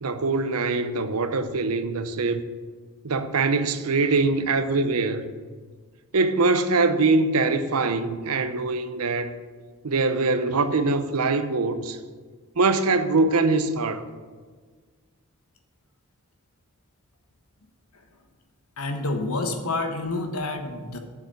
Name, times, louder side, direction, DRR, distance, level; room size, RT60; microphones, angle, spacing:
voice 1, 0.0-2.4 3.0-5.2 6.1-9.3 9.8-12.0 12.6-14.0, right 3 dB, 80° right, 0.8 m, -23 dB
voice 2, 18.8-21.0, left 2 dB, 75° left, 1.2 m, -28 dB
7.3 x 6.9 x 7.8 m
head